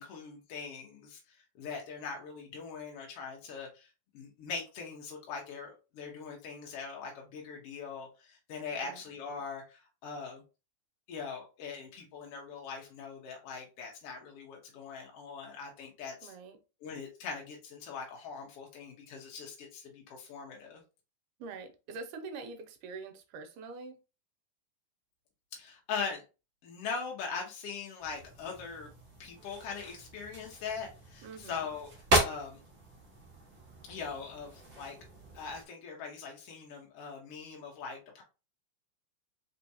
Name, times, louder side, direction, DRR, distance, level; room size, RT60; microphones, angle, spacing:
voice 1, 0.0-3.9 4.1-10.4 11.1-16.4 16.8-20.8 25.5-26.2 26.6-28.9 29.2-31.9 32.2-32.6 33.9-35.0 35.3-38.2, left 5 dB, 70° left, 1.4 m, -41 dB
voice 2, 8.7-9.0 16.2-16.6 21.4-24.0 31.2-31.7, right 4 dB, 80° right, 2.2 m, -45 dB
sound 1, 28.0-35.6, right 1 dB, 65° right, 0.6 m, -36 dB
4.6 x 3.7 x 2.7 m
omnidirectional pair, 3.8 m